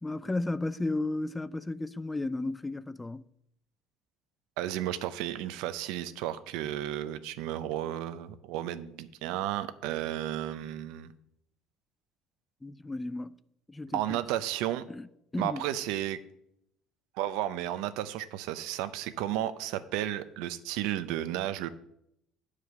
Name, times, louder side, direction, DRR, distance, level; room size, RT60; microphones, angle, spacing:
voice 1, 0.0-3.2 12.6-13.4 13.7-14.2 14.9-15.1 15.3-15.6, left 2 dB, 10° left, 0.3 m, -33 dB
voice 2, 4.6-11.1 13.9-14.9 15.4-16.2 17.2-21.7, right 12 dB, 80° right, 0.6 m, -33 dB
9.1 x 4.9 x 6.9 m
cardioid pair, 110°, 0 cm